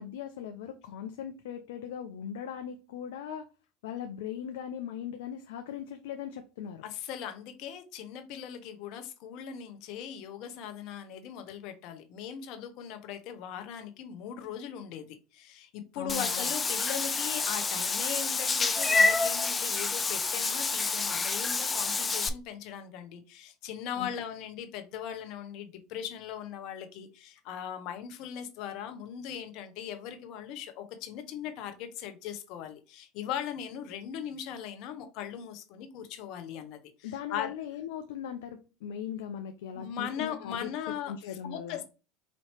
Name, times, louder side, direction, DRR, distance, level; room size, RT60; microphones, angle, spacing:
voice 1, 0.0-3.5 3.8-6.8 15.9-16.5 23.9-24.1 37.0-40.7 41.1-41.8, left 9 dB, 80° left, 0.5 m, -39 dB
voice 2, 6.8-37.5 39.7-41.8, left 9 dB, 60° left, 0.9 m, -39 dB
Meow / Water / Bathtub (filling or washing), 16.1-22.3, left 4 dB, 20° left, 0.4 m, -28 dB
4.2 x 2.8 x 3.2 m
hypercardioid pair, 90°, 0 cm